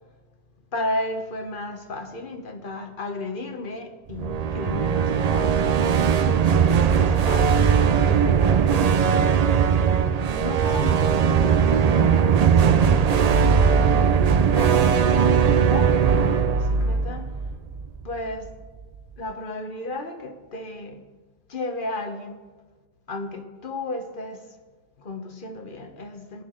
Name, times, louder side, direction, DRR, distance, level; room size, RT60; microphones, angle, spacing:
voice 1, 0.7-9.7 10.2-14.2 14.5-17.2 18.0-18.6 19.2-21.0 21.5-22.4 23.1-24.5 25.0-26.4, left 2 dB, 55° left, 6 dB, 1.2 m, -34 dB
sound 1, 4.1-18.1, right 7 dB, 55° right, 0.5 m, -19 dB
19.5 x 7.0 x 3.8 m, 1.4 s
omnidirectional pair, 1.1 m